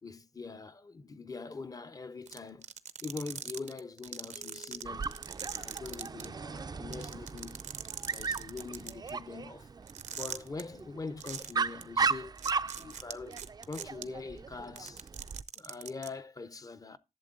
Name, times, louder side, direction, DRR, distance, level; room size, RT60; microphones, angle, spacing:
voice 1, 0.0-2.7 3.0-5.1 5.5-7.6 8.0-9.7 10.1-12.3 12.8-15.1 15.6-17.0, left 4 dB, 30° left, 0.7 m, -43 dB
sound 1, 2.3-6.2 6.6-6.7 6.9-9.1 9.9-10.6 11.2-11.5 11.8-11.9 12.4-14.0 14.6-16.1, right 7 dB, 85° right, 0.7 m, -40 dB
sound 2, 4.3-6.9, equal, 70° left, 1.8 m, -58 dB
Dog, 4.8-15.4, right 5 dB, 35° right, 0.4 m, -37 dB
11.5 x 7.1 x 3.7 m
wide cardioid pair, 140°, 12 cm